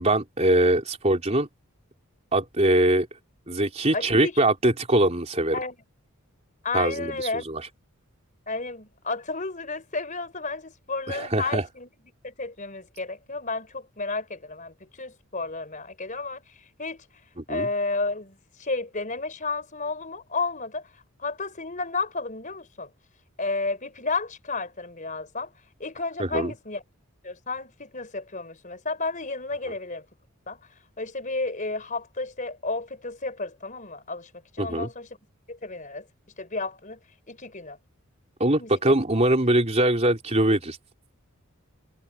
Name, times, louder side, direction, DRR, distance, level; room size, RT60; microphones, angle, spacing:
voice 1, 0.0-1.5 2.3-3.1 3.5-5.6 6.7-7.6 11.1-11.6 17.4-17.7 26.2-26.5 34.6-34.9 38.4-40.8, right 1 dB, 30° right, 3.7 m, -22 dB
voice 2, 3.9-4.4 5.5-5.8 6.6-7.5 8.5-11.9 12.2-17.0 17.5-20.9 21.2-22.9 23.4-25.5 25.8-26.8 27.2-30.0 30.5-30.6 31.0-35.1 35.5-36.1 36.4-37.0 37.3-37.8 38.6-39.0, left 3 dB, 35° left, 4.5 m, -32 dB
head